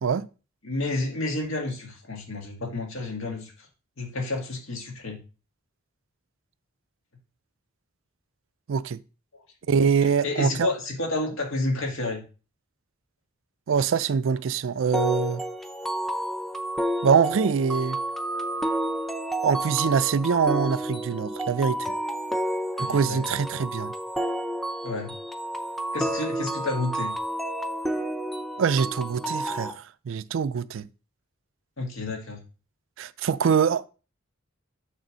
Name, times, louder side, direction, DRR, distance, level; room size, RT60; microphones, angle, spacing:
voice 1, 0.6-3.7 4.0-5.2 10.0-12.2 22.8-23.2 24.8-25.1 25.9-27.1 31.8-32.4, left 2 dB, 75° left, 1.8 m, -30 dB
voice 2, 8.7-9.0 9.7-10.7 13.7-15.4 17.0-18.0 19.4-21.9 22.8-23.9 28.6-29.7 30.1-30.9 33.0-33.8, right 6 dB, 70° right, 0.4 m, -24 dB
sound 1, 14.9-29.7, right 1 dB, ahead, 0.6 m, -30 dB
6.6 x 3.5 x 6.1 m
head